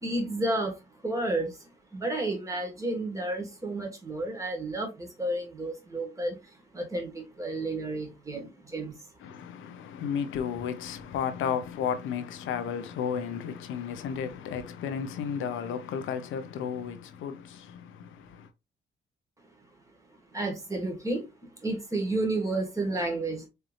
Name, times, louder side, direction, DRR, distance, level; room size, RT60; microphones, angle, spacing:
voice 1, 0.0-9.0 20.3-23.5, right 2 dB, 15° right, 1.9 m, -32 dB
voice 2, 9.2-18.5, left 7 dB, 85° left, 0.8 m, -33 dB
4.4 x 3.4 x 2.6 m
cardioid pair, 90°, 20 cm